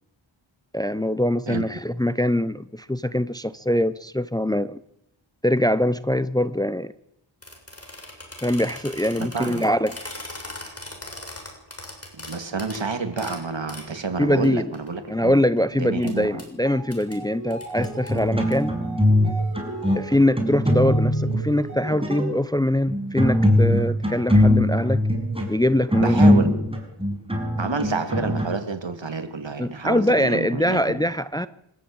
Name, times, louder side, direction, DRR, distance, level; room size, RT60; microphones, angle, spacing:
voice 1, 0.7-4.8 5.4-6.9 8.4-9.9 14.2-14.6 15.1-18.7 19.9-25.0 25.5-26.5 29.6-31.5, left 1 dB, 10° left, 0.7 m, -23 dB
sound 1, 7.4-13.9 14.4-14.5 14.7-15.6 16.0-16.1 16.4-16.5 16.9-17.1 17.5-18.5, left 1 dB, 30° left, 7.1 m, -39 dB
voice 2, 9.2-9.6 12.1-15.4 15.7-16.4 26.0-26.6 27.6-31.1, right 4 dB, 65° right, 2.7 m, -29 dB
sound 2, 16.5-22.3, right 1 dB, 40° right, 5.5 m, -38 dB
sound 3, 17.8-19.3 19.5-21.4 21.9-22.3 22.9-28.5, left 1 dB, 10° right, 5.8 m, -21 dB
25.0 x 14.0 x 8.9 m
wide cardioid pair, 65°, 48 cm